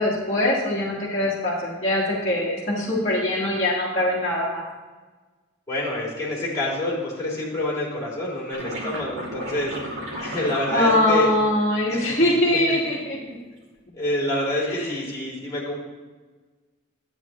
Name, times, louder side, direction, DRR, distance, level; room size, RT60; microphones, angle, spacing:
voice 1, 0.0-4.6 10.7-13.2 14.6-14.9, left 1 dB, 30° left, -9 dB, 1.6 m, -22 dB
voice 2, 5.7-9.7 10.2-11.3 11.9-12.2 13.9-15.7, left 1 dB, 15° left, -6 dB, 3.1 m, -27 dB
sound 1, 8.5-11.5 12.3-12.8, right 1 dB, 75° right, 2.3 m, -34 dB
10.5 x 9.0 x 3.0 m, 1.3 s
head